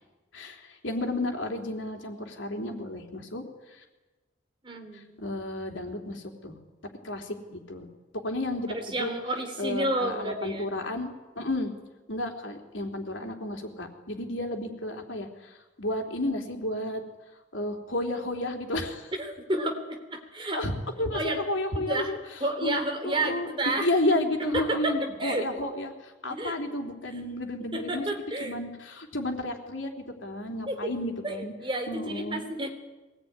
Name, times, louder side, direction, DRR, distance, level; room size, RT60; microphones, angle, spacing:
voice 1, 0.3-3.8 4.9-6.6 7.0-7.9 8.2-9.1 9.6-11.1 11.4-11.7 12.1-17.0 17.5-19.1 20.5-20.7 21.0-22.2 22.6-23.5 23.8-28.0 28.4-31.5 31.9-32.4, left 1 dB, 90° left, 3 dB, 3.7 m, -32 dB
voice 2, 4.6-5.2 8.7-10.7 19.2-20.6 21.1-21.4 21.9-22.1 22.4-23.9 24.4-25.5 26.3-26.6 27.2-27.3 27.7-28.6 30.7-30.9 31.2-32.7, right 1 dB, 25° right, 4 dB, 3.3 m, -31 dB
23.0 x 19.5 x 9.9 m, 1.2 s
head